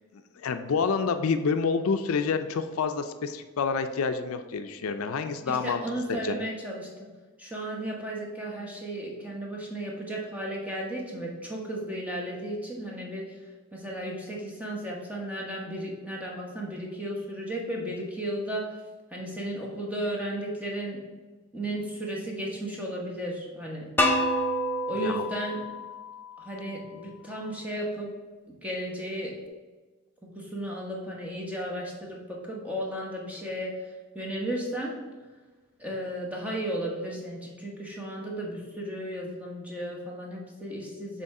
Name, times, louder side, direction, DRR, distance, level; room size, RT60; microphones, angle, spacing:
voice 1, 0.1-5.8 6.2-6.3 24.9-25.3, left 5 dB, 75° left, 9 dB, 0.4 m, -28 dB
voice 2, 5.5-7.1 7.4-13.4 13.7-18.8 19.1-21.0 21.5-24.0 24.8-25.6 26.4-28.1 28.5-29.4 30.2-34.9 35.8-41.2, right 1 dB, 5° right, -2 dB, 1.0 m, -34 dB
sound 1, 24.0-26.9, left 1 dB, 10° left, 0.5 m, -28 dB
6.9 x 3.0 x 4.7 m, 1.3 s
head